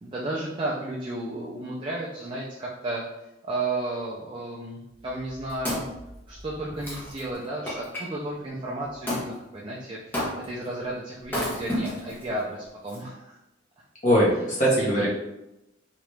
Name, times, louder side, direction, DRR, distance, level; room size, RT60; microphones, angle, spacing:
voice 1, 0.0-3.0 3.4-5.8 6.3-10.2 10.5-13.4 14.3-14.5 14.8-15.1, right 2 dB, 25° right, -5 dB, 0.4 m, -33 dB
Wood, 5.1-8.0 9.1-9.3 10.1-10.7 11.2-12.2 12.9-13.0, equal, 10° left, 0.7 m, -32 dB
voice 2, 14.0-15.1, equal, 40° left, -6 dB, 1.0 m, -21 dB
2.9 x 2.4 x 3.2 m, 0.90 s
head